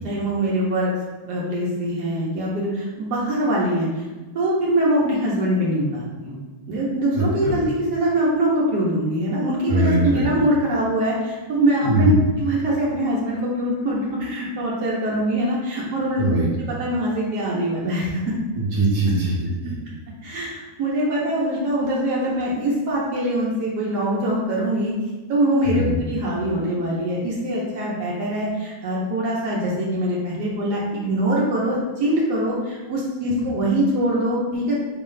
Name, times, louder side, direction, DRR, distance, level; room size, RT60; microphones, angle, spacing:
voice 1, 0.0-0.9 1.2-4.0 4.3-6.4 6.7-16.2 16.7-18.3 20.2-24.9 25.3-34.7, right 1 dB, 90° right, -5 dB, 1.4 m, -23 dB
voice 2, 9.7-10.3 11.8-12.2 16.2-16.5 18.5-19.8 25.6-25.9, right 1 dB, 65° right, -5 dB, 1.6 m, -21 dB
4.8 x 2.1 x 3.8 m, 1.3 s
omnidirectional pair, 1.7 m